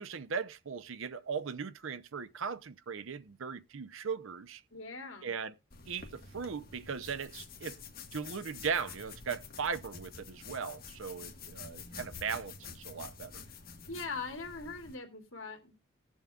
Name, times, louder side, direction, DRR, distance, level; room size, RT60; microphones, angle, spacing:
voice 1, 0.0-4.6 5.2-5.5 5.9-7.8 8.1-13.4, right 6 dB, 75° right, 0.6 m, -38 dB
voice 2, 4.7-5.3 13.4-13.5 13.9-15.8, left 4 dB, 70° left, 2.4 m, -41 dB
sound 1, 5.7-15.0, left 5 dB, 45° left, 1.5 m, -49 dB
19.5 x 7.2 x 2.4 m
head